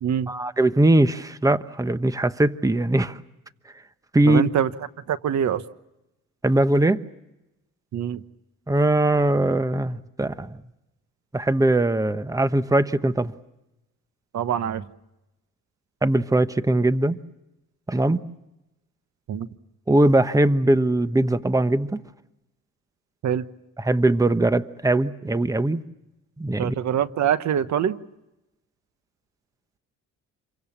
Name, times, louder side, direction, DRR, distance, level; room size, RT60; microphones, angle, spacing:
voice 1, 0.3-3.2 4.1-4.5 6.4-7.0 8.7-10.6 11.3-13.3 16.0-17.2 17.9-18.2 19.9-22.0 23.8-25.8 26.4-26.7, right 1 dB, 10° right, 12 dB, 1.1 m, -21 dB
voice 2, 4.3-4.7 5.1-5.6 7.9-8.2 14.3-14.9 19.3-19.5 23.2-23.4 26.6-28.0, right 9 dB, 65° right, 13 dB, 1.2 m, -24 dB
28.0 x 24.0 x 7.4 m, 0.93 s
cardioid pair, 90°, 30 cm